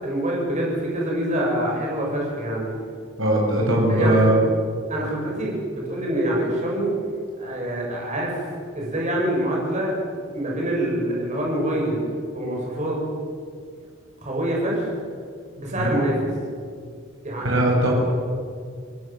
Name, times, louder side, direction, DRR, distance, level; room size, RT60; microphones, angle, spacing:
voice 1, 0.0-2.7 3.9-4.3 4.9-6.9 7.4-9.9 10.3-12.0 12.3-13.0 14.2-14.9 15.6-16.1 17.2-17.5, right 1 dB, 35° right, -3 dB, 7.9 m, -25 dB
voice 2, 3.2-4.4 15.8-16.0 17.4-17.9, right 1 dB, 75° right, -2 dB, 6.3 m, -19 dB
29.0 x 18.5 x 7.8 m, 2.2 s
head